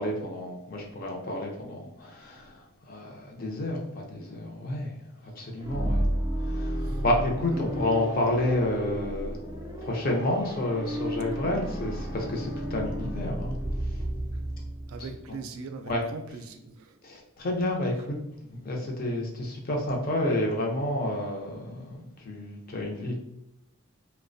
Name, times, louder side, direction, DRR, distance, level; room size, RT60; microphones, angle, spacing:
voice 1, 0.0-2.6 2.9-4.9 5.4-6.1 6.5-9.4 9.8-13.6 15.0-15.4 15.9-16.0 17.0-18.2 18.5-21.9 22.2-23.2, left 1 dB, 45° left, 0 dB, 0.5 m, -30 dB
sound 1, 5.6-15.3, right 1 dB, 15° right, 0.5 m, -32 dB
voice 2, 14.9-16.9, right 4 dB, 80° right, 7 dB, 0.3 m, -40 dB
2.4 x 2.1 x 2.5 m, 0.83 s
head